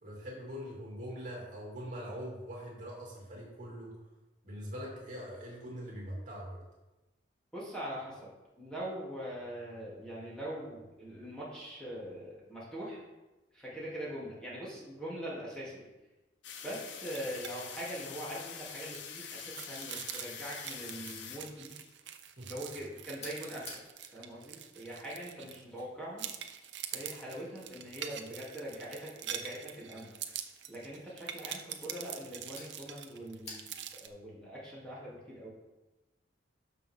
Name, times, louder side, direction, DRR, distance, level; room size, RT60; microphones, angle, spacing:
voice 1, 0.0-3.9 4.4-6.6 22.4-22.5, equal, 45° right, -4 dB, 2.9 m, -42 dB
voice 2, 7.5-8.3 8.6-13.0 13.5-15.8 16.6-21.7 22.5-23.7 24.1-26.2 26.9-30.1 30.7-33.7 34.0-35.5, equal, 5° left, -8 dB, 3.2 m, -42 dB
sound 1, 16.4-21.9, left 7 dB, 75° left, 0.8 m, -45 dB
sound 2, 17.1-17.5 17.8-18.0 18.3-25.8 26.2-34.1, right 10 dB, 75° right, 0.7 m, -44 dB
sound 3, 23.1-34.0, left 2 dB, 35° left, 2.4 m, -55 dB
12.5 x 6.0 x 3.8 m, 1.1 s
head